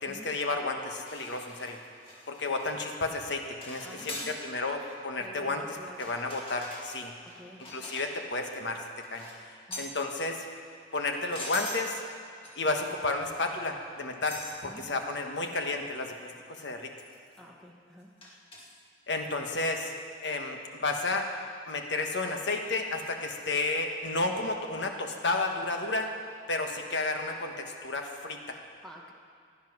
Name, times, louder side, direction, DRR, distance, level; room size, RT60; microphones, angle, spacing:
voice 1, 0.0-1.8 2.3-7.1 7.7-9.3 9.8-10.4 10.9-12.0 12.6-16.9 19.1-19.9 20.2-21.3 21.7-26.1 26.5-28.6, left 3 dB, 70° left, 3 dB, 1.4 m, -32 dB
sound 1, 1.0-2.7 3.0-3.3 3.6-4.4 4.8-5.0 5.9-8.3 9.0-9.4 9.7-10.0 10.8-11.9 12.4-12.9 13.2-13.6 14.3-14.6 15.0-15.1 15.5-15.6 15.9-16.0 17.0-17.4 18.2-18.8 19.8-20.0, left 2 dB, 30° left, 2.2 m, -43 dB
voice 2, 3.8-4.4 5.2-6.1 7.4-7.6 9.7-9.8 14.6-14.9 17.3-18.1 28.8-29.1, equal, 5° left, -1 dB, 1.5 m, -49 dB
16.0 x 10.5 x 6.1 m, 2.3 s
head